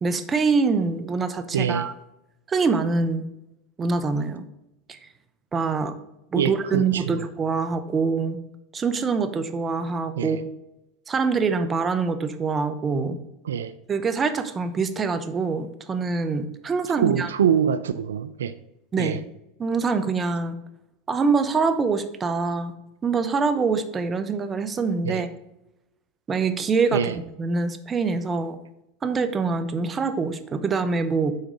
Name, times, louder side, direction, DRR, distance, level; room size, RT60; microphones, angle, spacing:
voice 1, 0.0-1.9 2.5-3.3 3.8-4.5 4.9-5.0 5.5-6.0 6.3-8.4 8.7-10.4 11.1-13.2 13.9-17.3 18.9-19.2 19.6-20.6 21.1-22.7 23.0-25.3 26.3-27.1 27.4-28.6 29.0-31.3, right 4 dB, 25° right, 10 dB, 0.8 m, -24 dB
voice 2, 1.5-1.9 6.4-6.8 7.1-7.2 10.2-10.4 13.5-13.7 17.0-18.5 19.0-19.2 25.0-25.2 26.9-27.1, right 8 dB, 90° right, 13 dB, 0.4 m, -24 dB
6.5 x 4.5 x 5.3 m, 0.87 s
hypercardioid pair, 100°, 0 cm